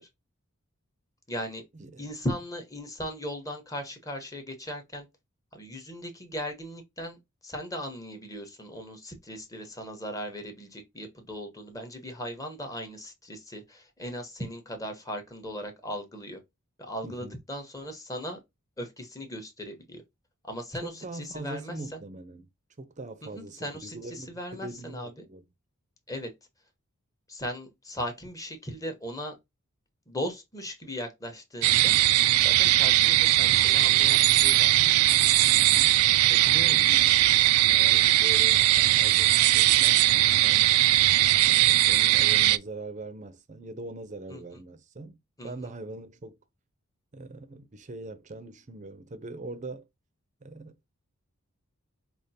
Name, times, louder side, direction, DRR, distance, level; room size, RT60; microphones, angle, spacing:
voice 1, 1.3-1.6 2.0-5.1 5.5-7.2 7.4-16.4 16.8-18.4 18.8-20.0 20.4-22.0 23.2-25.2 26.1-26.3 27.3-29.3 30.1-32.0 32.4-34.7 44.3-44.4 45.4-45.7, equal, 15° left, 0.9 m, -38 dB
voice 2, 17.0-17.4 20.8-22.5 22.8-25.4 35.5-35.9 36.3-37.3 37.7-40.7 41.4-45.2 45.4-46.4 47.1-49.9 50.4-50.8, right 2 dB, 35° right, 0.5 m, -41 dB
sound 1, 31.6-42.6, right 15 dB, 90° right, 0.3 m, -20 dB
5.0 x 2.4 x 2.7 m
head